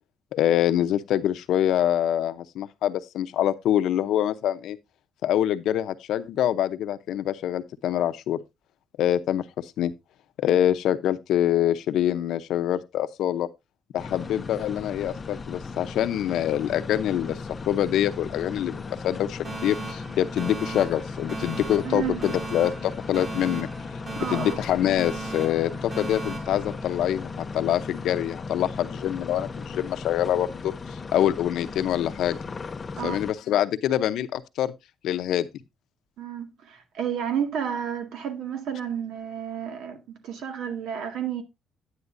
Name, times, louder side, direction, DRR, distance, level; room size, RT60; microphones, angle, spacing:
voice 1, 0.3-4.8 5.2-8.4 9.0-9.9 10.4-13.5 13.9-17.4 17.7-23.7 24.3-32.4 33.0-34.7 35.0-35.5, left 11 dB, 75° left, 0.7 m, -25 dB
sound 1, 14.0-33.3, left 4 dB, 25° left, 0.6 m, -37 dB
Alarm, 19.4-27.5, right 4 dB, 35° right, 3.6 m, -38 dB
voice 2, 21.8-22.2 24.2-24.6 25.7-25.8 33.0-33.2 36.2-41.4, right 8 dB, 75° right, 1.9 m, -31 dB
9.8 x 9.6 x 2.6 m
cardioid pair, 145°, 0 cm